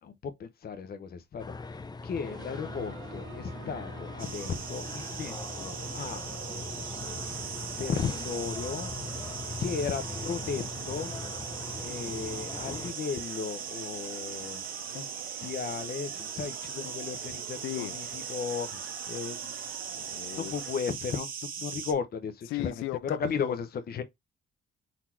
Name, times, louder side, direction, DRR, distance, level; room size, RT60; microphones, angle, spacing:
voice 1, 0.0-1.8 2.0-6.7 7.8-8.9 9.2-11.1 11.8-14.6 14.9-15.1 15.4-19.6 20.4-22.7 23.0-24.0, left 6 dB, 50° left, 0.9 m, -35 dB
sound 1, 1.4-12.9, left 3 dB, 20° left, 0.5 m, -40 dB
sound 2, 2.2-20.8, right 13 dB, 75° right, 0.5 m, -48 dB
sound 3, 4.2-21.9, right 7 dB, 45° right, 1.1 m, -39 dB
voice 2, 17.6-18.0 20.0-20.5 21.7-21.8 22.5-23.6, left 17 dB, 90° left, 0.4 m, -36 dB
4.2 x 2.9 x 4.4 m
cardioid pair, 90°, 20 cm